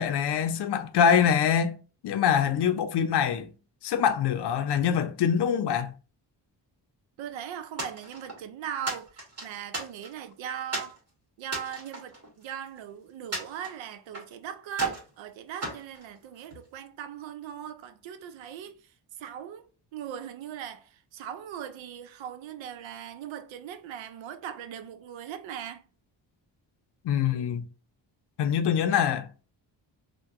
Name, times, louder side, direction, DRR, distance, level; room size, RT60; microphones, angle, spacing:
voice 1, 0.0-1.7 2.0-3.5 3.8-5.9 27.0-27.7 28.4-29.3, left 8 dB, 60° left, 0.5 m, -24 dB
voice 2, 7.2-11.0 11.4-25.8, right 9 dB, 80° right, 0.6 m, -39 dB
sound 1, 7.8-8.4 8.9-10.3 10.7-11.0 11.4-12.8 13.3-14.3 14.7-15.1 15.6-16.7, right 3 dB, 35° right, 1.6 m, -35 dB
3.3 x 2.2 x 2.9 m
cardioid pair, 70°, 45 cm